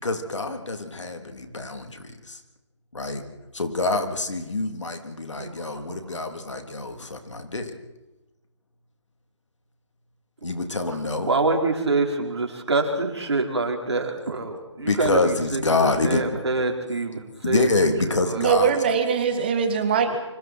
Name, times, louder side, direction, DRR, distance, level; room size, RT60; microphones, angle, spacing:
voice 1, 0.0-2.4 2.9-3.2 3.5-7.7 10.4-11.3 14.8-16.4 17.4-18.8, left 3 dB, 80° left, 5 dB, 3.5 m, -26 dB
voice 2, 5.4-6.0 11.3-15.6 16.0-17.7 18.3-18.4, right 3 dB, 65° right, 2 dB, 4.6 m, -25 dB
voice 3, 18.3-20.2, right 6 dB, 20° right, 7 dB, 1.8 m, -22 dB
27.0 x 25.0 x 4.6 m, 1.0 s
figure-of-eight pair, 170°, 15 cm